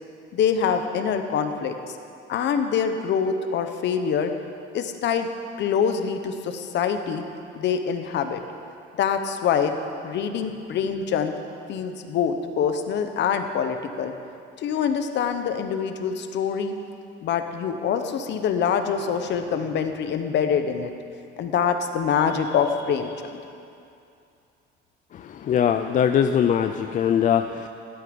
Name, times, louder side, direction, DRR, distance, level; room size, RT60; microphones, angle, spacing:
voice 1, 0.3-1.9 2.3-4.3 4.7-5.3 5.6-7.3 7.5-8.4 9.0-9.7 10.0-11.3 11.7-14.1 14.6-16.8 17.2-20.9 21.4-23.4, left 7 dB, 60° left, 7 dB, 1.1 m, -25 dB
voice 2, 25.1-27.7, left 8 dB, 40° left, 7 dB, 0.4 m, -22 dB
16.0 x 12.5 x 5.4 m, 2.6 s
cardioid pair, 165°, 21 cm